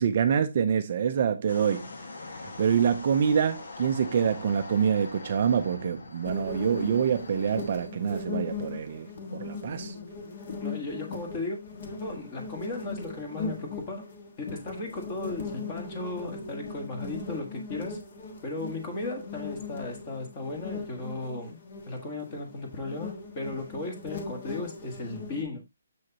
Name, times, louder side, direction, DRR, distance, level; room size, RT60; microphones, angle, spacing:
voice 1, 0.0-1.9 2.4-9.9, right 7 dB, 30° right, 0.6 m, -26 dB
sound 1, 1.5-7.9, left 3 dB, 65° left, 1.5 m, -43 dB
sound 2, 6.2-25.4, left 4 dB, 35° left, 1.4 m, -39 dB
voice 2, 10.6-11.6 12.0-14.1 14.4-18.0 18.4-21.6 21.9-25.6, left 2 dB, 20° left, 1.6 m, -36 dB
7.1 x 6.3 x 2.8 m
hypercardioid pair, 175°, 0 cm